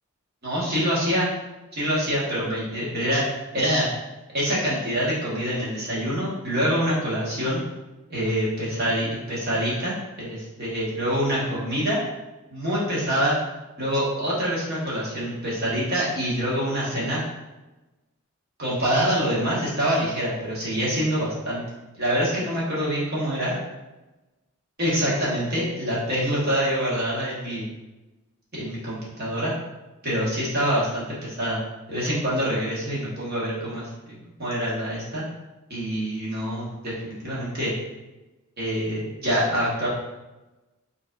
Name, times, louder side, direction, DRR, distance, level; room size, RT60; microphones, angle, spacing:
voice 1, 0.4-1.3 1.7-3.3 3.5-3.9 4.3-7.6 8.1-12.0 12.5-13.4 13.8-17.2 18.6-21.6 22.0-23.5 24.8-27.7 28.5-29.5 30.0-31.6 31.9-33.9 34.4-35.3 35.7-37.7 38.6-39.9, equal, 45° right, -7 dB, 1.5 m, -25 dB
4.8 x 3.3 x 2.5 m, 1.1 s
head